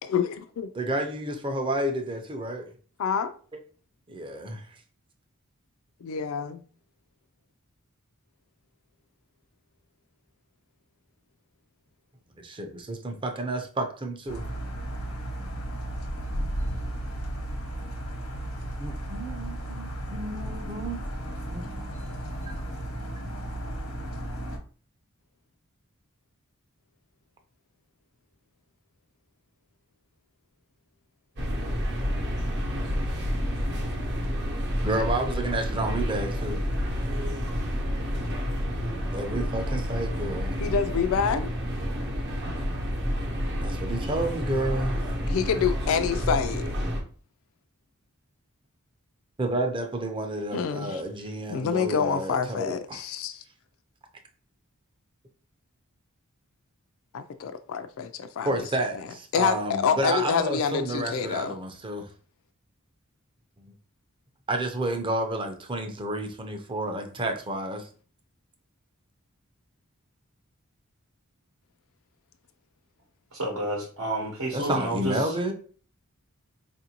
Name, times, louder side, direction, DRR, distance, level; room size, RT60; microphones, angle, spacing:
voice 1, 0.0-0.7 3.0-3.3 6.0-6.6 40.6-41.5 45.3-46.6 50.5-51.0 51.5-53.4 57.1-58.7 58.9-61.6, left 6 dB, 65° left, 0.3 m, -27 dB
voice 2, 0.7-2.7 4.1-4.7 12.4-14.5 18.8-21.0 21.5-21.8 34.8-36.6 39.1-40.6 43.6-45.0 49.4-53.0 58.4-62.1 64.5-67.9 74.5-75.5, right 1 dB, 25° right, 0.5 m, -30 dB
sound 1, 14.3-24.6, right 1 dB, 85° left, 0.9 m, -34 dB
sound 2, 31.4-47.0, equal, 55° right, 0.8 m, -29 dB
voice 3, 73.3-75.3, right 1 dB, 75° right, 0.9 m, -30 dB
4.4 x 2.5 x 2.8 m
head